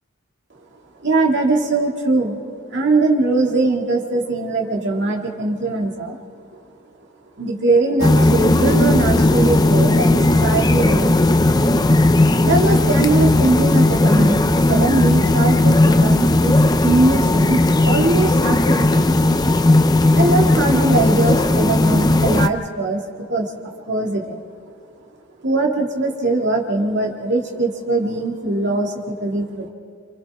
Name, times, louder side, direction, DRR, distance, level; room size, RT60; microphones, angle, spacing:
voice 1, 1.0-2.4 2.7-6.2 7.4-11.4 12.4-16.5 16.8-19.1 20.1-23.0 23.3-23.5 23.9-24.4 25.4-29.7, right 2 dB, 55° right, -1 dB, 2.2 m, -21 dB
sound 1, 8.0-22.5, left 2 dB, 20° left, 0.5 m, -16 dB
28.5 x 28.0 x 3.6 m, 2.5 s
head